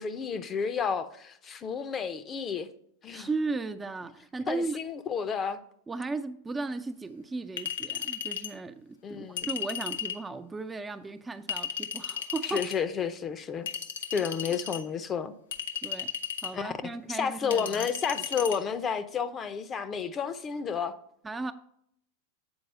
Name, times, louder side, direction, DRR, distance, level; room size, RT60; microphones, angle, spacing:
voice 1, 0.0-2.7 3.0-3.3 4.5-5.6 9.0-9.5 12.4-13.7 14.1-15.3 16.5-16.8 17.1-20.9, left 6 dB, 30° left, 0.6 m, -31 dB
voice 2, 3.1-4.8 5.9-12.7 14.5-14.6 15.8-16.1 16.4-17.9 21.2-21.5, right 3 dB, 15° right, 0.4 m, -36 dB
Chink clink, 7.6-8.5 9.4-10.2 11.5-12.7 13.7-14.8 15.5-16.5 17.5-18.6, left 9 dB, 85° left, 0.7 m, -35 dB
7.9 x 4.0 x 5.5 m
hypercardioid pair, 115°, 0 cm